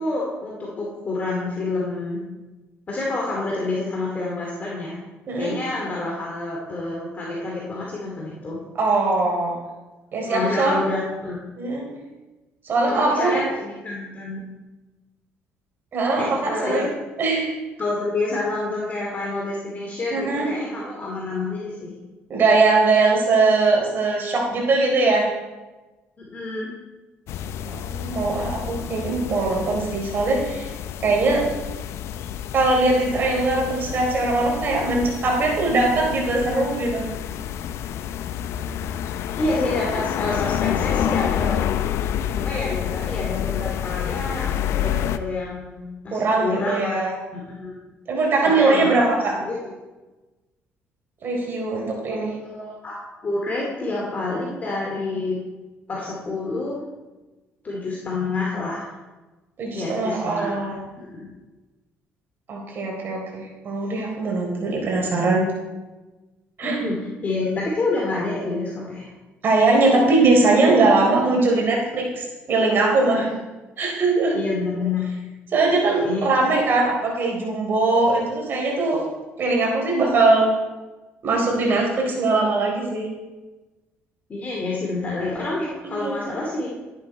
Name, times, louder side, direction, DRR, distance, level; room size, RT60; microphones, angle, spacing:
voice 1, 0.0-2.2 2.9-5.0 5.4-8.6 10.3-11.4 12.9-14.4 16.2-16.9 17.8-21.9 26.2-26.7 39.4-41.7 42.3-47.0 47.3-47.9 48.4-49.7 52.2-55.4 55.9-56.8 57.6-58.9 59.7-61.3 66.6-67.0 67.2-69.1 73.1-73.4 74.3-75.1 76.0-76.5 84.3-86.7, left 2 dB, 35° left, -3 dB, 2.5 m, -28 dB
voice 2, 5.3-5.6 8.7-9.5 10.1-10.8 11.6-11.9 12.6-13.4 15.9-16.9 17.2-17.5 20.1-20.5 22.3-25.3 27.7-30.7 31.0-31.4 32.5-37.0 46.1-47.1 48.1-49.3 51.2-52.4 59.6-60.8 62.5-65.4 66.6-66.8 69.4-73.3 73.8-74.4 75.5-79.0 79.4-80.5 81.2-83.1 85.8-86.3, right 3 dB, 45° right, -1 dB, 4.0 m, -21 dB
sound 1, 27.3-45.2, left 10 dB, 70° left, 0.6 m, -28 dB
13.0 x 10.5 x 4.4 m, 1.2 s
cardioid pair, 105°, 5 cm